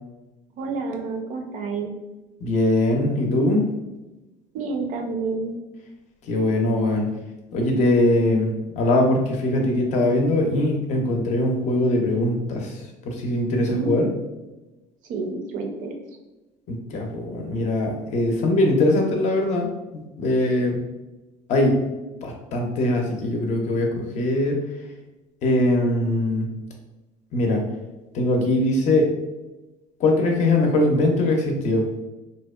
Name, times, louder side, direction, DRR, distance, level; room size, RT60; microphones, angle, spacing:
voice 1, 0.6-1.9 4.5-5.6 13.7-13.9 15.1-15.9, right 4 dB, 55° right, 4 dB, 0.4 m, -29 dB
voice 2, 2.4-3.6 6.3-7.1 7.5-8.5 8.8-14.1 16.7-19.7 19.9-20.8 21.5-21.8 22.2-23.9 24.2-24.6 25.4-26.4 27.3-27.6 28.1-29.1 30.0-31.8, left 1 dB, 50° left, 2 dB, 0.5 m, -21 dB
2.6 x 2.1 x 2.3 m, 1.1 s
cardioid pair, 130°, 16 cm